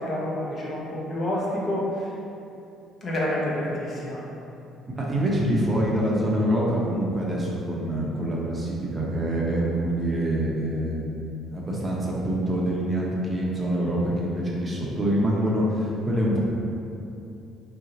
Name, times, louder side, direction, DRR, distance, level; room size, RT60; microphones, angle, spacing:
voice 1, 0.0-2.1 3.0-4.3, left 1 dB, 45° left, -5 dB, 0.8 m, -28 dB
voice 2, 5.0-16.4, right 1 dB, 30° right, -4 dB, 0.7 m, -25 dB
2.8 x 2.2 x 3.8 m, 2.7 s
supercardioid pair, 65°, 0 cm